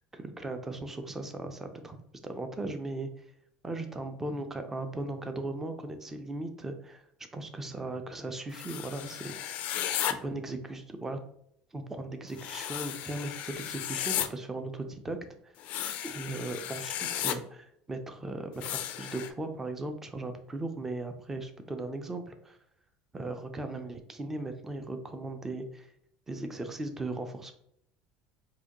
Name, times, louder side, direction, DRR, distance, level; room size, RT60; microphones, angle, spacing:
voice 1, 0.1-2.0 2.2-3.3 3.6-7.0 7.3-9.6 10.1-11.2 11.7-15.2 15.4-15.5 16.0-22.6 23.1-25.9 26.3-27.5, right 2 dB, 10° right, 7 dB, 0.4 m, -37 dB
sound 1, 8.5-10.1 12.4-14.3 15.6-17.3 18.6-19.3, left 11 dB, 50° left, 0.3 m, -34 dB
4.7 x 2.1 x 2.9 m, 0.70 s
cardioid pair, 145°, 3 cm